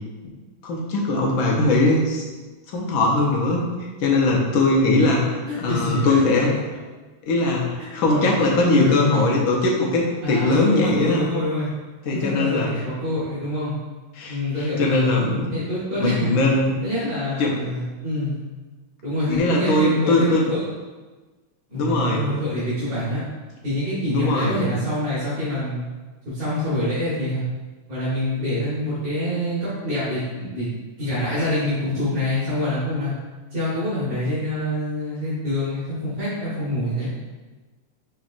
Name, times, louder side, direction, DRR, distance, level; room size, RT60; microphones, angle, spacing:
voice 1, 0.6-2.2 2.7-3.6 4.0-5.2 5.6-6.5 7.3-11.2 12.0-12.7 14.2-14.4 14.8-15.5 16.0-16.8 17.4-17.5 19.3-20.4 21.7-22.2 24.1-24.6, left 2 dB, 70° left, -2 dB, 1.6 m, -20 dB
voice 2, 5.5-6.2 8.0-9.3 10.2-11.7 12.0-13.7 14.3-15.1 15.5-16.3 16.8-18.4 19.0-20.6 21.7-23.2 23.6-25.8 26.3-27.4 27.9-30.7 31.0-33.1 33.5-37.1, left 1 dB, 45° right, -11 dB, 1.9 m, -26 dB
5.4 x 4.0 x 2.5 m, 1.3 s
omnidirectional pair, 2.4 m